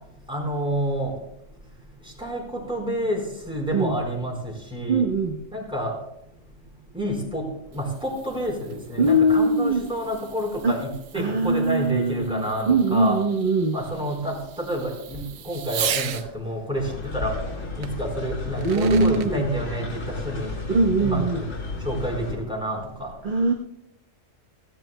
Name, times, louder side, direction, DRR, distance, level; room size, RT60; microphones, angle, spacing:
voice 1, 0.3-1.1 2.0-5.1 5.5-6.0 6.9-7.5 7.7-13.2 13.7-17.4 17.8-20.5 21.0-21.5 21.8-23.1, right 1 dB, 5° right, -2 dB, 4.2 m, -29 dB
voice 2, 4.9-5.4 9.0-9.9 10.6-10.8 11.1-13.8 18.6-19.5 20.7-21.4 23.2-23.5, right 2 dB, 45° right, 1 dB, 1.1 m, -21 dB
Fireworks, 7.4-16.3 17.8-17.9 18.4-19.3, right 9 dB, 85° right, 1.0 m, -37 dB
sound 1, 16.8-22.4, left 4 dB, 80° left, 2.6 m, -33 dB
29.5 x 10.5 x 2.2 m, 0.79 s
omnidirectional pair, 1.3 m